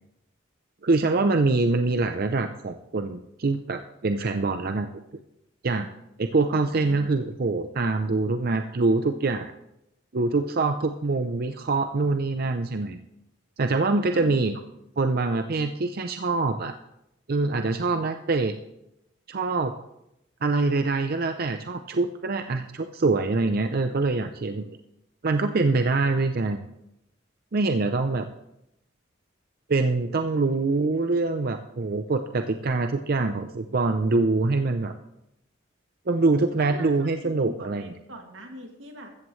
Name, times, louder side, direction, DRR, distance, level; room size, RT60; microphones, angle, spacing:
voice 1, 0.8-4.9 5.6-5.9 6.2-9.5 10.1-13.0 13.6-14.5 15.0-16.7 17.3-18.6 19.3-19.7 20.4-24.8 25.2-26.6 27.5-28.3 29.7-34.9 36.1-37.9, right 3 dB, 50° right, 7 dB, 0.6 m, -24 dB
voice 2, 6.6-7.1 14.1-14.5 36.6-39.1, equal, 90° right, 2 dB, 2.4 m, -43 dB
14.5 x 14.0 x 3.2 m, 0.84 s
head